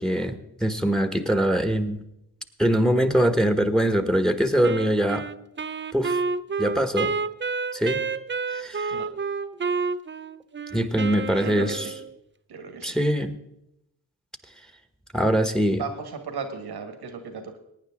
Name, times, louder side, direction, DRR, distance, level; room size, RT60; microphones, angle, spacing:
voice 1, 0.0-2.0 2.6-5.2 5.9-6.2 6.6-7.1 7.7-8.0 8.5-8.9 10.7-11.8 12.8-13.4 15.1-15.8, right 1 dB, ahead, 9 dB, 1.3 m, -23 dB
Wind instrument woodwind instrument, 4.6-12.1, right 4 dB, 30° right, 0.6 m, -29 dB
voice 2, 11.4-11.9 12.5-13.0 15.7-17.6, right 5 dB, 80° right, 7 dB, 1.7 m, -35 dB
17.5 x 9.3 x 3.6 m, 0.81 s
supercardioid pair, 40°, 38 cm